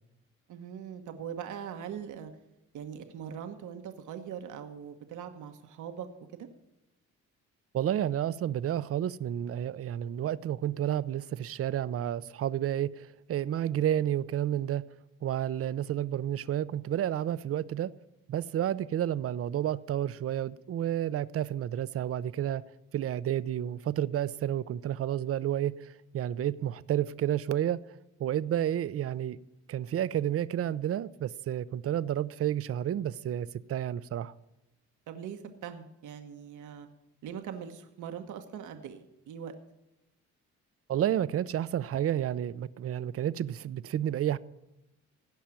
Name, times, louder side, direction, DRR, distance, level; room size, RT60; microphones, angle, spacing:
voice 1, 0.5-2.3 2.7-6.1 6.3-6.5 35.1-36.9 37.2-39.5, right 8 dB, 80° right, 1.2 m, -41 dB
voice 2, 7.7-14.8 15.2-17.9 18.3-22.6 22.9-27.8 28.2-29.4 29.7-34.3 40.9-44.4, right 11 dB, 50° right, 0.6 m, -30 dB
17.0 x 5.7 x 8.8 m
cardioid pair, 90°, 30 cm